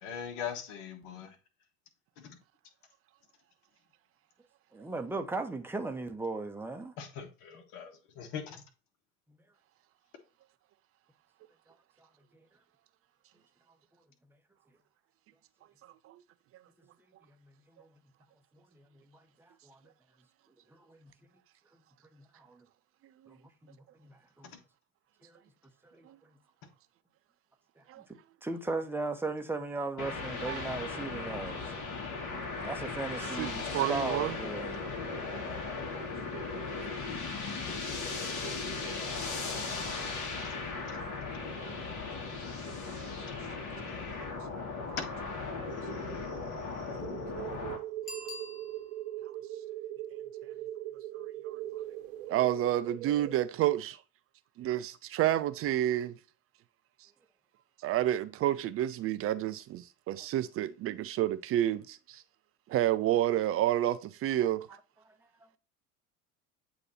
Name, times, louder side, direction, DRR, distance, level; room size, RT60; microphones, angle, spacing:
voice 1, 0.0-1.3 2.2-2.4 7.0-8.6 24.4-24.6 40.4-40.6 40.9-41.0 45.0-45.1 45.9-46.0 46.3-47.0, left 7 dB, 60° left, 1.5 m, -42 dB
voice 2, 4.7-6.9 17.4-17.5 17.8-17.9 18.7-19.8 20.7-21.1 22.1-22.6 23.3-23.4 23.6-24.5 25.2-25.4 25.9-26.1 28.4-31.6 32.5-34.9 65.1-65.2 65.4-65.5, right 3 dB, 5° right, 0.8 m, -37 dB
sound 1, 30.0-47.8, left 4 dB, 40° left, 2.1 m, -37 dB
voice 3, 33.7-34.3 37.4-37.5 46.3-46.4 51.5-51.6 52.3-54.0 54.6-56.1 57.8-62.2 62.7-64.7, right 13 dB, 30° right, 0.4 m, -29 dB
sound 2, 47.0-53.4, right 13 dB, 65° right, 0.9 m, -40 dB
Bicycle bell, 48.0-49.2 54.7-54.8, left 1 dB, 20° left, 1.9 m, -45 dB
8.2 x 2.9 x 4.1 m
hypercardioid pair, 70°, 44 cm